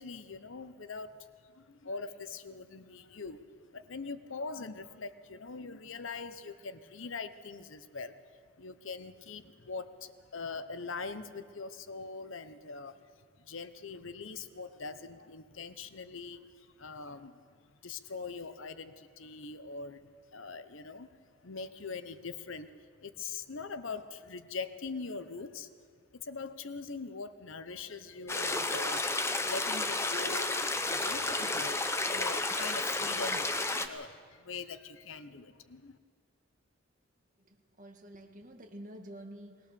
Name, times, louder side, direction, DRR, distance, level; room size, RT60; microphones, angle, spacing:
voice 1, 0.0-13.1 13.4-21.1 21.4-25.7 26.1-36.0, left 4 dB, 75° left, 12 dB, 0.9 m, -42 dB
sound 1, 28.3-33.9, left 2 dB, 15° left, 0.9 m, -32 dB
voice 2, 37.5-39.7, right 1 dB, 40° right, 3 dB, 2.1 m, -49 dB
20.5 x 20.0 x 6.9 m, 2.1 s
head